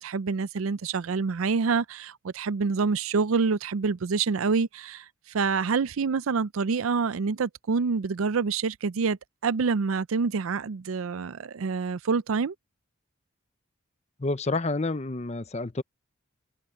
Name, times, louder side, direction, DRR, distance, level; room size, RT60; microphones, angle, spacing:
voice 1, 0.0-9.2 9.4-12.5, right 5 dB, 85° right, 0.5 m, -27 dB
voice 2, 14.2-15.8, left 2 dB, 30° left, 0.7 m, -29 dB
open air
head